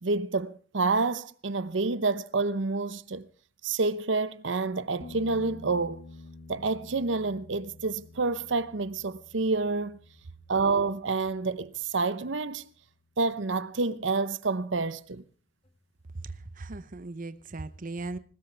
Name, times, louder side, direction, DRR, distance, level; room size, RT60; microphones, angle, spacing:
voice 1, 0.0-3.3 3.6-6.0 6.5-10.0 10.5-12.6 13.2-15.2, right 3 dB, 75° right, 0.8 m, -28 dB
sound 1, 5.0-12.6 15.7-15.8, left 2 dB, 35° left, 2.1 m, -49 dB
voice 2, 16.2-18.2, right 2 dB, 45° right, 0.8 m, -38 dB
21.0 x 19.5 x 3.4 m
head